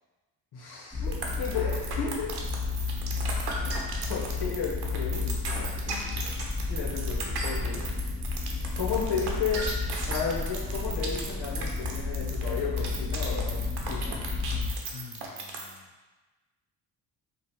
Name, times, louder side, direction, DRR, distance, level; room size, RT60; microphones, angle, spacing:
voice 1, 0.5-2.3 3.6-5.3 6.7-7.8 8.8-9.6 10.1-14.2, left 6 dB, 60° left, -4 dB, 1.2 m, -33 dB
sound 1, 0.9-14.7, left 4 dB, 15° left, 1.2 m, -32 dB
sound 2, 1.1-15.8, right 4 dB, 65° right, 0.9 m, -36 dB
voice 2, 5.2-6.4 14.9-15.9, left 8 dB, 40° left, 2 dB, 0.4 m, -46 dB
3.2 x 2.5 x 4.3 m, 1.2 s
supercardioid pair, 65°, 42 cm